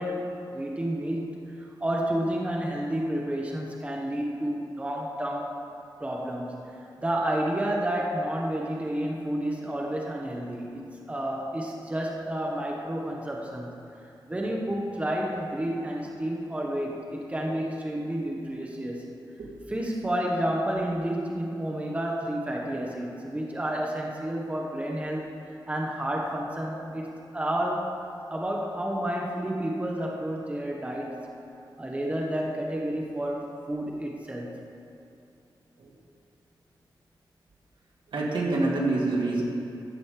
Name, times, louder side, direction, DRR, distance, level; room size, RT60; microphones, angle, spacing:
voice 1, 0.0-5.5 6.0-13.7 14.3-19.1 19.7-27.9 28.3-31.2 31.8-34.6, right 1 dB, 15° right, -1 dB, 1.1 m, -30 dB
voice 2, 38.1-39.4, right 2 dB, 80° right, -3 dB, 2.2 m, -26 dB
14.0 x 5.2 x 7.5 m, 2.7 s
wide cardioid pair, 140°, 8 cm